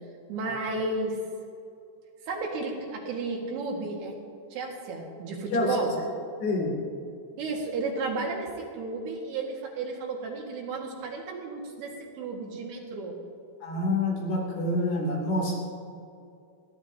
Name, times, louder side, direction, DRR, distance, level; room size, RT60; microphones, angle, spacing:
voice 1, 0.3-1.2 2.3-4.2 4.5-6.0 7.4-13.2, right 3 dB, 75° right, -1 dB, 3.7 m, -33 dB
voice 2, 5.5-6.1 6.4-6.7 13.6-15.6, left 1 dB, 80° left, -3 dB, 5.2 m, -27 dB
29.0 x 11.5 x 2.8 m, 2.5 s
omnidirectional pair, 4.8 m